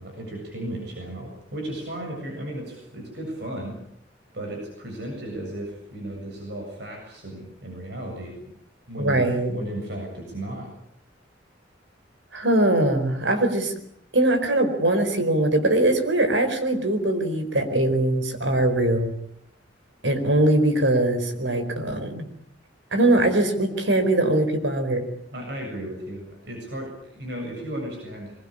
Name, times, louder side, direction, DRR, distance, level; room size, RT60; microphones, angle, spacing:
voice 1, 0.0-3.8 4.3-8.4 8.9-9.2 9.5-10.7 25.3-28.3, right 1 dB, 65° right, 2 dB, 7.6 m, -35 dB
voice 2, 9.0-9.5 12.3-13.7 14.1-19.1 20.0-22.3 22.9-25.1, right 1 dB, 85° right, 7 dB, 4.6 m, -21 dB
23.5 x 22.0 x 8.8 m, 0.70 s
head